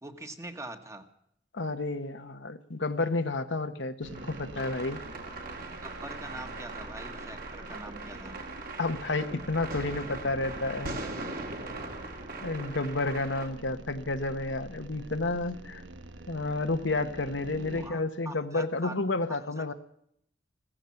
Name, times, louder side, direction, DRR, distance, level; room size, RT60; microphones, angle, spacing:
voice 1, 0.0-1.1 5.8-8.4 17.6-18.0 18.2-19.0 19.3-19.7, right 2 dB, 15° right, 6 dB, 1.4 m, -43 dB
voice 2, 1.5-5.0 8.8-11.0 12.4-15.8 16.3-19.7, left 2 dB, 90° left, 8 dB, 1.2 m, -31 dB
sound 1, 4.0-17.9, right 2 dB, 85° right, 1.3 m, -46 dB
sound 2, 4.1-13.5, right 2 dB, 50° right, 2.8 m, -40 dB
16.5 x 15.0 x 5.8 m, 0.71 s
head